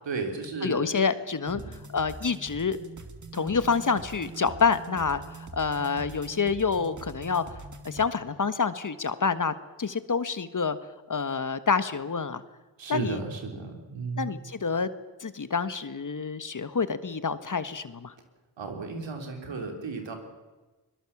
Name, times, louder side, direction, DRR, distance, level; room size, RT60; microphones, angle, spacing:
voice 1, 0.1-0.9 1.5-1.8 12.8-14.4 18.6-20.2, right 4 dB, 80° right, 4 dB, 3.7 m, -34 dB
voice 2, 0.6-1.6 1.9-2.8 3.3-7.4 7.8-10.8 11.1-12.4 12.9-13.2 14.2-14.9 15.2-18.1, left 5 dB, 45° left, 12 dB, 1.5 m, -27 dB
sound 1, 1.5-8.1, right 3 dB, 40° right, 2.4 m, -44 dB
22.0 x 21.5 x 7.3 m, 1.2 s
supercardioid pair, 40°, 44 cm